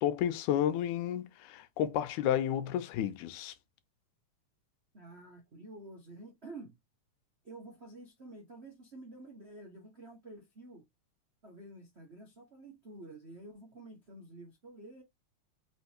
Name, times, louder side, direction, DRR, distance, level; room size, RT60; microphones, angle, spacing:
voice 1, 0.0-3.5, left 10 dB, 85° left, 2.2 m, -31 dB
voice 2, 4.9-6.8 7.4-10.8 11.4-15.0, right 2 dB, 75° right, 0.6 m, -50 dB
5.1 x 3.4 x 2.9 m
omnidirectional pair, 3.4 m